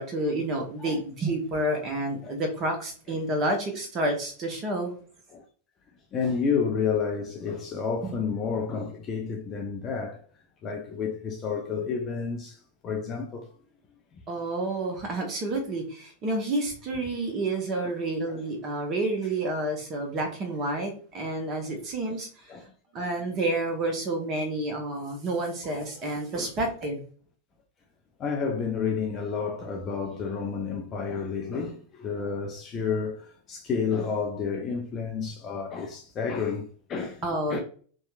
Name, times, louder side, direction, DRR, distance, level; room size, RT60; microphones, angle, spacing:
voice 1, 0.0-4.9 8.0-8.1 14.3-22.4 22.9-27.0 37.2-37.6, right 2 dB, 30° right, 0.9 m, -29 dB
voice 2, 6.1-10.2 10.6-13.5 14.1-14.2 17.8-17.9 18.3-18.4 22.1-22.2 22.5-23.1 25.7-25.9 26.3-26.5 28.2-37.6, left 5 dB, 30° left, 0.4 m, -31 dB
2.8 x 2.2 x 2.4 m
figure-of-eight pair, 90°, 0 cm